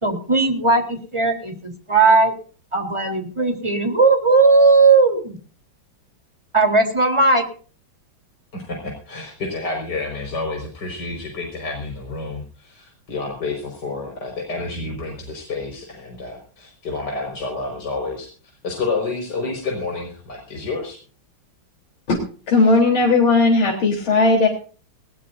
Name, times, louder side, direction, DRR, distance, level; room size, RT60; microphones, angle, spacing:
voice 1, 0.0-2.3 2.7-5.4 6.5-7.4, right 3 dB, 15° right, 3 dB, 3.5 m, -17 dB
voice 2, 8.5-18.3 18.6-21.0, left 3 dB, 55° left, 1 dB, 5.9 m, -29 dB
voice 3, 22.5-24.5, left 3 dB, 75° left, 1 dB, 4.5 m, -16 dB
20.5 x 19.5 x 2.7 m, 0.40 s
omnidirectional pair, 2.2 m